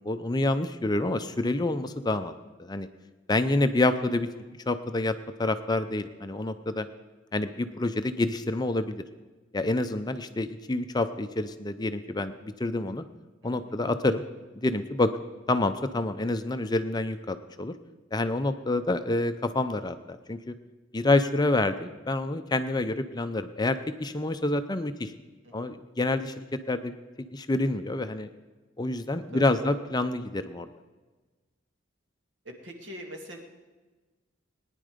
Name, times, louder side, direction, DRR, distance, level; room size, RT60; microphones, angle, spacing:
voice 1, 0.0-2.3 2.6-2.9 3.3-4.3 4.7-5.1 5.4-6.9 7.3-9.0 9.5-13.0 13.4-14.2 14.6-15.1 15.5-17.7 18.1-20.5 20.9-25.1 25.5-26.9 27.3-28.3 28.8-30.7, left 2 dB, 20° left, 9 dB, 0.5 m, -27 dB
voice 2, 13.4-13.7 25.4-25.7 29.3-29.8 32.6-33.4, right 1 dB, 65° right, 3 dB, 2.2 m, -43 dB
20.0 x 10.0 x 5.1 m, 1.3 s
head